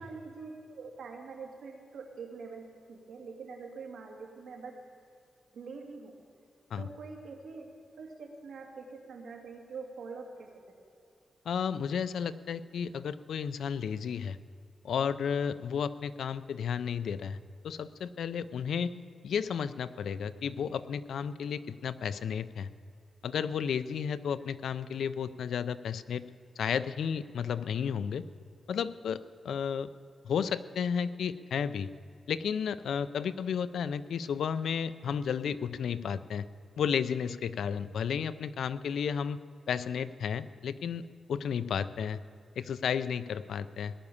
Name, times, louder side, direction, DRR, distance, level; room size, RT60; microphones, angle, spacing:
voice 1, 0.0-4.8 5.5-6.2 6.8-7.7 8.0-10.5, right 4 dB, 85° right, 1 dB, 2.5 m, -44 dB
voice 2, 11.4-14.4 14.8-17.4 17.6-18.9 19.2-22.7 23.2-26.2 26.6-28.2 28.7-29.2 29.4-29.9 30.2-31.9 32.3-36.5 36.8-39.4 39.7-42.2 42.6-43.9, left 7 dB, 85° left, 14 dB, 0.5 m, -32 dB
18.5 x 11.0 x 7.1 m, 2.5 s
wide cardioid pair, 160°, 0 cm